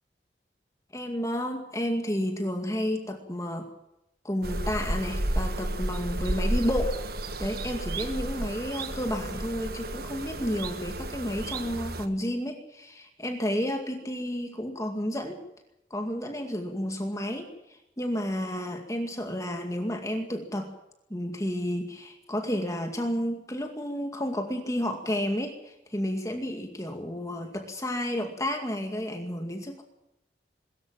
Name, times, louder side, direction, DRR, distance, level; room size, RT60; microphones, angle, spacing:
voice 1, 0.9-3.7 4.2-7.0 7.4-15.4 15.9-17.5 18.0-20.7 21.1-29.8, equal, 15° left, 4 dB, 2.2 m, -31 dB
sound 1, 4.4-12.1, right 1 dB, 55° right, 1.6 m, -32 dB
21.5 x 14.0 x 9.1 m, 0.86 s
head